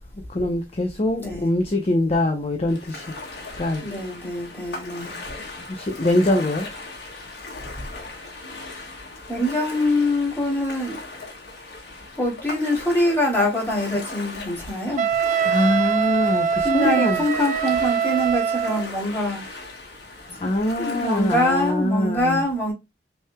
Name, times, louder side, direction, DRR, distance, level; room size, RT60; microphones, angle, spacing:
voice 1, 0.3-3.1 3.6-3.9 5.7-6.7 15.4-17.2 20.4-22.4, left 1 dB, 35° left, 0.7 m, -23 dB
voice 2, 1.2-1.5 3.8-5.2 7.8-7.9 9.3-11.0 12.2-15.0 16.6-19.4 20.4-20.5 20.8-22.7, left 1 dB, 15° left, 2.6 m, -24 dB
Ocean, 2.7-21.7, left 2 dB, 65° left, 1.6 m, -38 dB
Wind instrument woodwind instrument, 15.0-18.9, right 7 dB, 45° right, 0.5 m, -23 dB
5.9 x 3.4 x 2.2 m
head